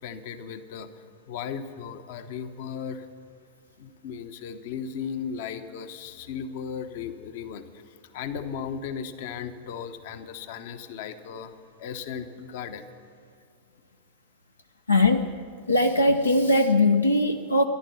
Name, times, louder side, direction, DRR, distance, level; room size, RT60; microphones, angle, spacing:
voice 1, 0.0-3.1 3.8-11.5 11.8-12.9, left 7 dB, 50° left, 10 dB, 0.8 m, -36 dB
voice 2, 14.9-15.4 15.7-17.6, left 2 dB, 80° left, 6 dB, 0.6 m, -20 dB
14.5 x 11.5 x 6.9 m, 2.4 s
figure-of-eight pair, 90°, 0 cm